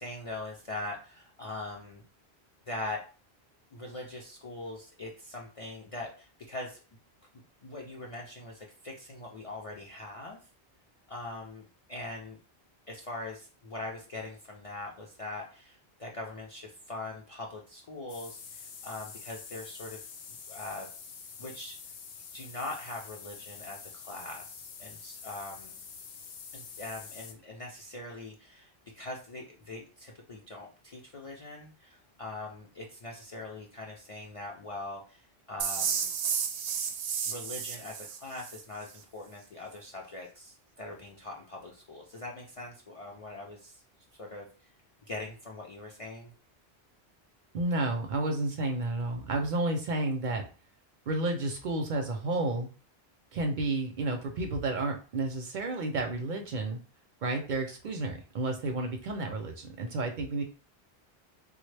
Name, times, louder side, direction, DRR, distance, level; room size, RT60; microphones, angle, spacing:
voice 1, 0.0-2.0 2.7-3.0 3.7-6.8 7.6-10.4 11.1-12.4 12.9-20.0 20.5-20.9 21.4-21.8 22.3-25.8 26.5-36.1 37.3-43.8 44.2-44.7 45.1-46.3, left 2 dB, 50° left, -2 dB, 0.4 m, -42 dB
sound 1, 18.1-27.3, left 6 dB, 90° left, 0.9 m, -46 dB
sound 2, 35.6-38.6, right 7 dB, 90° right, 0.8 m, -32 dB
voice 2, 47.5-50.5 51.1-52.7 53.3-56.8 57.2-60.4, right 2 dB, 60° right, 3 dB, 0.6 m, -31 dB
3.5 x 2.1 x 3.2 m, 0.37 s
omnidirectional pair, 1.1 m